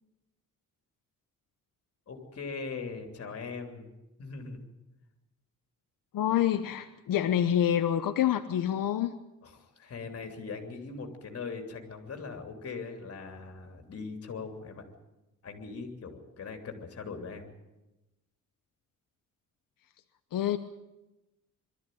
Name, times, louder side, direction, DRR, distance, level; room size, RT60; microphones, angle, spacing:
voice 1, 2.1-3.9 4.2-4.7 9.4-14.9 15.4-17.5, left 4 dB, 45° left, 5 dB, 3.3 m, -40 dB
voice 2, 6.1-9.1 20.3-20.6, left 10 dB, 90° left, 7 dB, 1.0 m, -27 dB
22.5 x 13.5 x 9.3 m, 1.0 s
wide cardioid pair, 150°, 32 cm